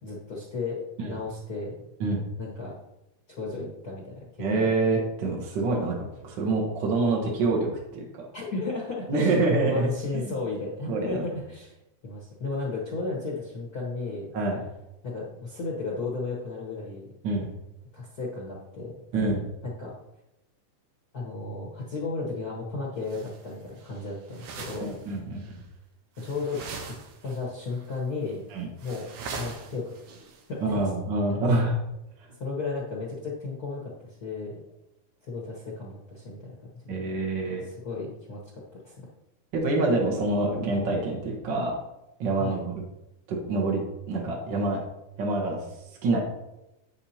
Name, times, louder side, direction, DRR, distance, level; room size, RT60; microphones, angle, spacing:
voice 1, 0.0-1.9 2.4-2.8 3.3-5.1 8.3-9.4 9.7-11.7 12.0-14.3 15.0-17.1 17.9-19.0 19.6-20.0 21.1-25.0 26.2-27.0 27.2-28.5 28.8-29.1 29.3-30.0 30.5-30.8 32.4-34.6 35.2-37.0 37.6-39.1 42.4-42.6, left 3 dB, 55° left, -4 dB, 1.1 m, -34 dB
voice 2, 4.4-6.0 6.2-8.3 9.1-9.9 10.1-10.4 10.9-11.2 14.3-14.6 17.2-17.5 19.1-19.4 24.8-25.6 28.5-28.7 30.6-31.8 36.9-37.7 39.5-41.8 42.2-42.8 43.3-43.8 44.1-44.8 45.2-45.6 46.0-46.2, right 2 dB, 55° right, -2 dB, 1.3 m, -26 dB
sound 1, 23.1-23.5 23.8-25.1 25.4-25.6 26.2-27.4 27.7-28.0 28.3-28.4 28.8-30.4, right 4 dB, 85° right, 2.5 m, -41 dB
8.8 x 7.2 x 2.8 m, 0.92 s
omnidirectional pair, 3.6 m